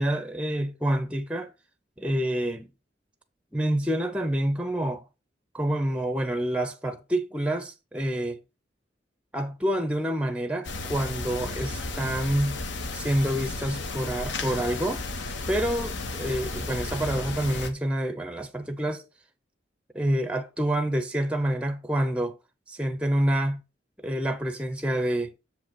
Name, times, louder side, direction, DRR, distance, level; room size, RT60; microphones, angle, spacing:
voice 1, 0.0-1.5 2.0-2.7 3.5-5.0 5.5-8.4 9.3-12.6 12.9-15.0 15.5-19.0 19.9-22.4 22.7-23.6 24.0-25.3, right 1 dB, 5° right, 0.5 m, -27 dB
sound 1, 10.6-17.7, left 3 dB, 75° left, 1.0 m, -33 dB
6.9 x 5.2 x 3.9 m
head